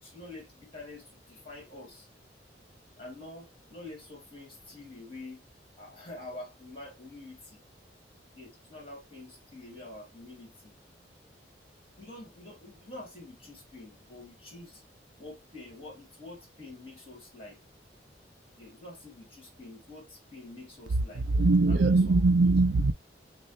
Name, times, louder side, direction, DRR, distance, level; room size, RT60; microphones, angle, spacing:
voice 1, 0.0-2.1 3.0-5.4 5.8-7.6 8.3-10.7 12.0-14.8 15.2-17.6 18.5-21.2 21.7-22.2, left 2 dB, 30° left, 2.3 m, -47 dB
voice 2, 20.9-22.9, right 3 dB, 75° right, 0.4 m, -22 dB
6.1 x 2.4 x 2.8 m
head